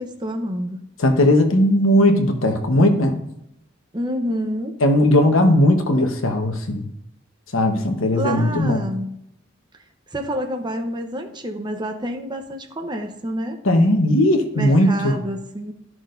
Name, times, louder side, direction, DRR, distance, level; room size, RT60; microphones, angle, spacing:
voice 1, 0.0-0.9 3.9-4.8 8.1-9.2 10.1-13.6 14.5-15.7, equal, 20° right, 4 dB, 0.8 m, -28 dB
voice 2, 1.0-3.2 4.8-6.8 7.5-8.8 13.6-15.2, left 1 dB, 80° left, 5 dB, 1.1 m, -17 dB
13.5 x 6.1 x 2.6 m, 0.78 s
head